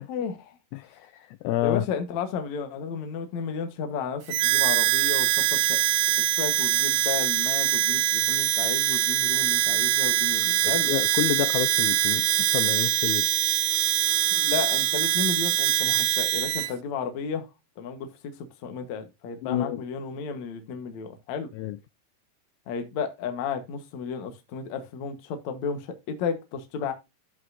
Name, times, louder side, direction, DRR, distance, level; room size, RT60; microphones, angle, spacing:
voice 1, 0.1-0.6 1.6-5.8 6.2-10.9 14.3-17.5 17.8-21.5 22.7-26.9, left 6 dB, 60° left, 2.3 m, -33 dB
voice 2, 0.7-1.9 10.6-13.3 19.4-19.8 21.5-21.8, left 14 dB, 90° left, 1.7 m, -29 dB
Harmonica, 4.3-16.7, right 15 dB, 90° right, 2.4 m, -23 dB
13.0 x 5.3 x 2.6 m
omnidirectional pair, 4.0 m